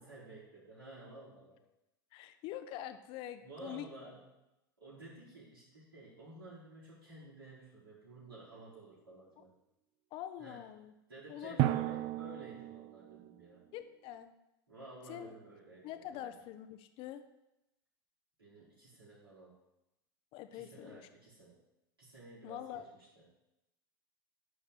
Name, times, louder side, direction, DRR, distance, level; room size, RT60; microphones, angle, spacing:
voice 1, 0.0-1.6 3.4-4.3 4.8-9.5 10.4-10.6 11.1-13.6 14.7-16.4 18.4-19.6 20.5-21.6 22.0-23.3, right 2 dB, 80° right, -8 dB, 4.5 m, -53 dB
voice 2, 2.1-3.8 10.1-10.9 11.3-11.8 13.7-14.4 15.1-15.3 15.8-17.2 20.3-21.1 22.4-22.8, left 11 dB, 45° left, 10 dB, 0.7 m, -45 dB
Drum, 8.3-8.4 11.6-13.4, right 15 dB, 50° right, 0.5 m, -34 dB
11.0 x 4.6 x 7.7 m, 0.92 s
figure-of-eight pair, 80°, 12 cm